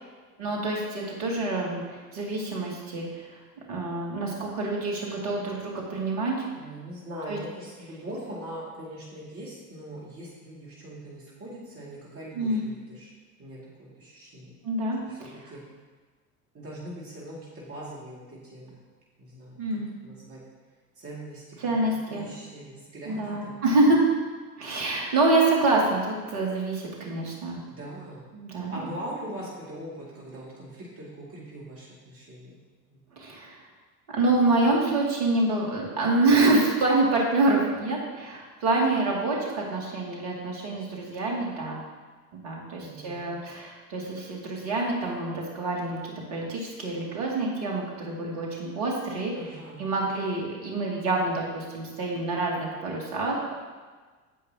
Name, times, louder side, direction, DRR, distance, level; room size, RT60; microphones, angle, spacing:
voice 1, 0.4-3.2 3.7-6.5 7.3-7.4 12.3-12.7 14.6-15.3 19.6-19.9 21.6-22.3 23.1-24.0 24.6-27.6 28.3-28.7 33.2-33.6 34.1-41.8 42.3-46.0 46.3-49.3 49.8-53.7, right 2 dB, 55° right, -2 dB, 2.6 m, -26 dB
voice 2, 6.5-13.1 13.4-14.6 15.0-15.2 15.5-15.6 16.5-18.8 19.2-20.4 21.0-23.6 23.9-24.0 27.7-28.2 28.7-32.6 32.9-33.0 34.3-34.7 42.8-43.3 49.3-49.8, right 1 dB, 30° right, -6 dB, 2.4 m, -41 dB
15.5 x 5.3 x 2.9 m, 1.4 s
figure-of-eight pair, 75°, 46 cm